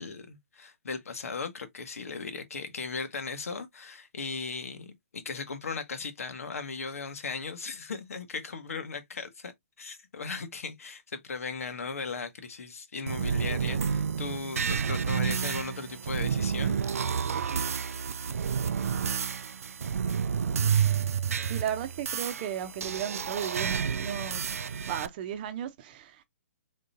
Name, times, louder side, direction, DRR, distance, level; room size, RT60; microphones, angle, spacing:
voice 1, 0.0-9.5 9.8-16.8, left 4 dB, 75° left, 1.2 m, -37 dB
sound 1, 13.1-25.1, right 7 dB, 75° right, 0.4 m, -30 dB
voice 2, 21.5-24.4 24.9-26.3, right 9 dB, 40° right, 0.7 m, -35 dB
3.8 x 3.7 x 2.6 m
hypercardioid pair, 140°, 8 cm